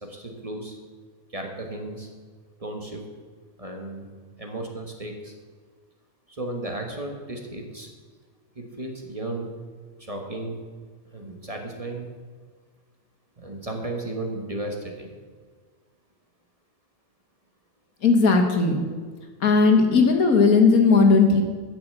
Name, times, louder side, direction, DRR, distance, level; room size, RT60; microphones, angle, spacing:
voice 1, 0.0-0.8 1.3-2.1 2.6-3.0 3.6-4.1 4.4-5.3 6.3-7.9 8.5-9.5 10.0-10.6 11.1-12.1 13.4-15.1, right 2 dB, 25° right, 2 dB, 1.4 m, -34 dB
voice 2, 18.0-18.8 19.4-21.4, left 4 dB, 80° left, 4 dB, 1.9 m, -17 dB
9.9 x 6.8 x 7.8 m, 1.6 s
omnidirectional pair, 1.5 m